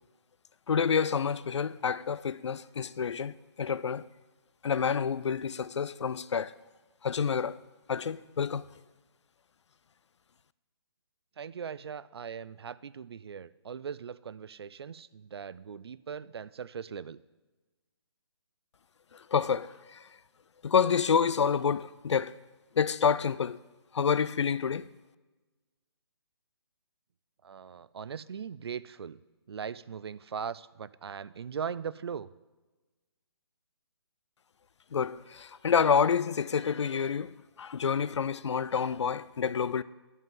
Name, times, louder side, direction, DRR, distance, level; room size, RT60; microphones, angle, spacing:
voice 1, 0.7-4.0 4.6-6.5 7.0-7.6 7.9-8.6 19.1-20.0 20.6-22.3 22.8-23.6 23.9-24.9 34.9-39.8, left 6 dB, 80° left, 0.5 m, -28 dB
voice 2, 11.4-17.2 27.4-29.2 29.5-32.3, right 7 dB, 65° right, 0.4 m, -39 dB
11.0 x 5.6 x 7.6 m
hypercardioid pair, 170°, 14 cm